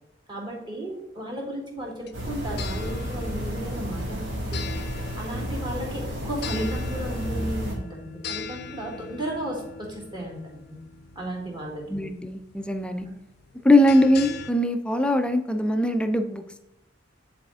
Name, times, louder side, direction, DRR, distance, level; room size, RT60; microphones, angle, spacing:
voice 1, 0.3-4.8 5.2-10.8 11.2-11.8 13.0-13.2, right 1 dB, 25° right, -3 dB, 2.0 m, -34 dB
sound 1, 1.8-14.5, left 5 dB, 55° left, 0.6 m, -41 dB
sound 2, 2.1-7.7, equal, 85° right, 1.9 m, -31 dB
voice 2, 11.9-13.1 13.6-16.6, left 1 dB, 5° left, 7 dB, 0.4 m, -21 dB
9.1 x 4.2 x 3.6 m, 0.84 s
head